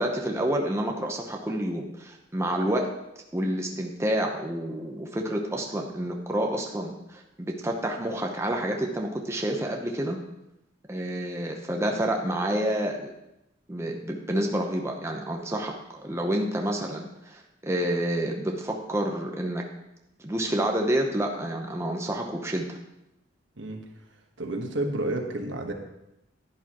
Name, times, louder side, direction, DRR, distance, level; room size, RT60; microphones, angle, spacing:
voice 1, 0.0-2.9 3.3-10.2 10.9-13.1 13.7-19.6 20.2-22.8, right 1 dB, 15° right, 1 dB, 0.8 m, -29 dB
voice 2, 24.4-25.7, right 1 dB, 65° right, 3 dB, 1.3 m, -30 dB
11.0 x 10.5 x 3.0 m, 0.88 s
head